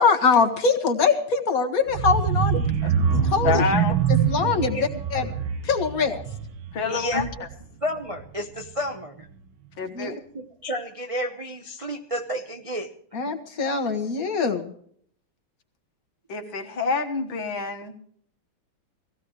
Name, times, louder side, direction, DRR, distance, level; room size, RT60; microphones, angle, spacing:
voice 1, 0.0-2.6 3.1-3.6 4.1-5.3 5.6-6.2 9.9-10.2 13.1-14.7, left 5 dB, 45° left, 5 dB, 1.8 m, -23 dB
sound 1, 1.9-7.7 8.0-8.3 8.6-8.7, right 7 dB, 70° right, 1.7 m, -25 dB
voice 2, 3.4-4.0 6.7-7.3 9.8-10.1 16.3-17.9, left 5 dB, 65° left, 5 dB, 2.2 m, -27 dB
voice 3, 6.9-7.2 7.8-9.3 10.3-13.2, equal, 50° right, 3 dB, 0.4 m, -31 dB
19.0 x 15.5 x 3.1 m, 0.62 s
omnidirectional pair, 2.4 m